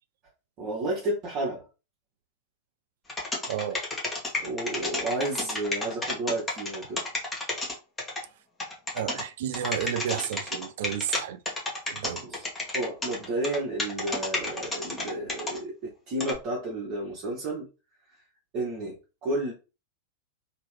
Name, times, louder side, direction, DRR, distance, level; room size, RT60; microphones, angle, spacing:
voice 1, 0.6-1.6 4.4-7.0 12.2-12.4 12.7-17.7 18.5-19.0 19.2-19.5, right 1 dB, 40° right, 1.0 m, -31 dB
sound 1, 3.1-8.2 8.6-9.2 9.5-11.2 11.5-15.6 16.2-16.4, left 2 dB, 15° left, 1.1 m, -30 dB
voice 2, 3.5-3.8 8.9-11.4 11.9-12.3, right 10 dB, 55° right, 0.3 m, -32 dB
3.0 x 2.9 x 3.2 m
figure-of-eight pair, 90°, 0 cm